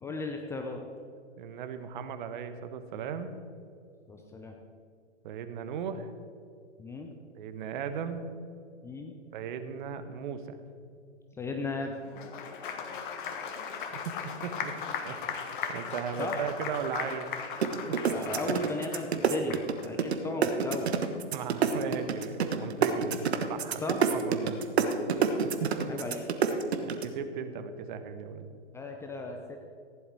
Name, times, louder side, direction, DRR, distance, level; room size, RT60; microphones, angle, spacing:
voice 1, 0.0-0.8 4.1-4.5 6.8-7.1 8.8-9.1 11.4-12.0 16.2-16.4 18.1-20.9 23.8-24.0 25.9-26.3 28.7-29.7, left 3 dB, 10° left, 3 dB, 0.6 m, -36 dB
voice 2, 1.4-3.4 5.2-6.1 7.3-8.3 9.3-10.6 13.9-14.7 15.0-17.3 17.9-18.1 21.3-23.2 23.5-24.6 25.4-25.9 26.9-28.6, right 7 dB, 45° right, 9 dB, 1.3 m, -37 dB
Applause, 12.0-19.8, left 6 dB, 45° left, 1.6 m, -38 dB
sound 1, 17.6-20.2 20.4-27.1, right 7 dB, 60° right, 1.4 m, -26 dB
15.5 x 11.0 x 4.7 m, 2.4 s
hypercardioid pair, 125°, 35 cm